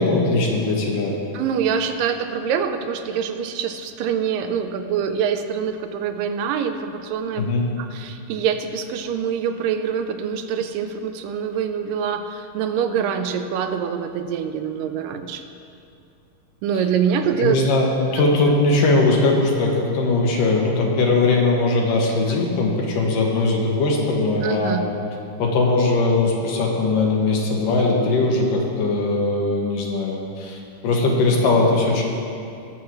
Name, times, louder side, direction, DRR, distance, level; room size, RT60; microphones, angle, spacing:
voice 1, 0.0-1.2 7.4-7.6 17.4-24.8 25.4-32.0, left 2 dB, 75° left, -1 dB, 2.8 m, -20 dB
voice 2, 1.3-7.5 7.8-15.5 16.6-17.6 24.4-24.8, right 7 dB, 85° right, 7 dB, 2.3 m, -25 dB
19.0 x 7.2 x 3.2 m, 2.6 s
omnidirectional pair, 3.9 m